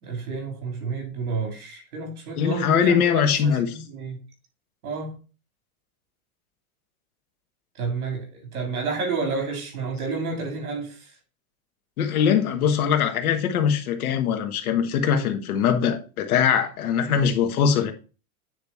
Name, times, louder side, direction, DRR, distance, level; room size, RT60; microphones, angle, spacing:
voice 1, 0.0-4.2 4.8-5.2 7.8-11.1, right 4 dB, 90° right, 3.7 m, -30 dB
voice 2, 2.4-3.7 12.0-17.9, left 7 dB, 80° left, 1.5 m, -22 dB
9.2 x 3.6 x 4.2 m
supercardioid pair, 125°, 43 cm